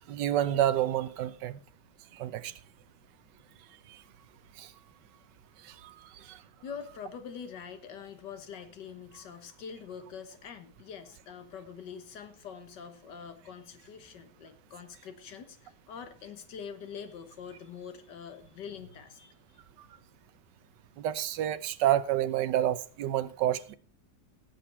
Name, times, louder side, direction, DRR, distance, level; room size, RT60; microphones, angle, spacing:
voice 1, 0.1-1.6 2.1-2.5 4.6-4.7 5.6-5.9 6.3-6.4 21.0-23.7, right 12 dB, 85° right, 1.4 m, -29 dB
voice 2, 6.2-19.3, left 7 dB, 85° left, 1.9 m, -44 dB
16.0 x 7.9 x 4.3 m
omnidirectional pair, 1.8 m